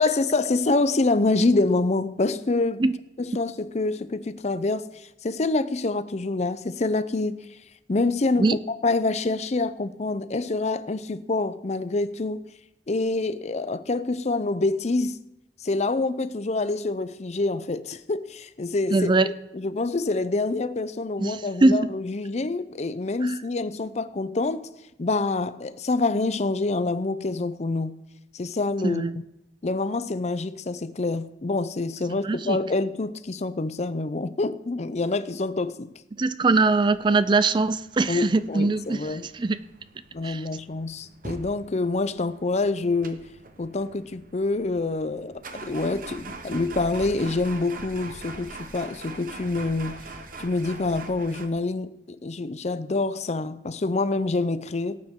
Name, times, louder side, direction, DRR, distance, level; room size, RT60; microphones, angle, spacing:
voice 1, 0.0-2.8 3.2-7.4 7.9-12.4 12.9-15.2 15.6-24.7 25.0-27.9 28.3-29.0 29.6-35.9 38.1-39.3 40.1-43.3 43.6-50.0 50.4-52.0 52.2-55.0, left 3 dB, 40° left, 0.6 m, -26 dB
voice 2, 18.9-19.3 21.2-21.9 23.2-23.3 28.8-29.1 32.2-32.6 36.2-39.6 40.2-40.4, right 3 dB, 25° right, 0.4 m, -22 dB
sound 1, 36.5-51.5, right 3 dB, 50° right, 1.1 m, -43 dB
18.0 x 9.0 x 3.7 m
head